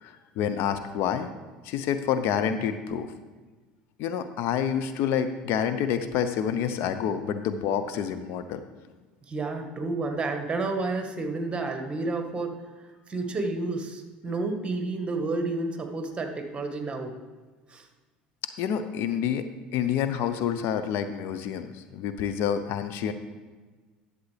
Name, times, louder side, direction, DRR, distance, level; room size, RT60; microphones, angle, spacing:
voice 1, 0.0-1.3 1.6-3.1 4.0-8.6 18.6-19.5 19.7-23.1, left 8 dB, 60° left, 10 dB, 0.6 m, -28 dB
voice 2, 9.3-12.6 13.1-17.1 17.7-17.9, right 3 dB, 25° right, 5 dB, 1.5 m, -30 dB
11.5 x 7.4 x 3.4 m, 1.3 s
hypercardioid pair, 70°, 5 cm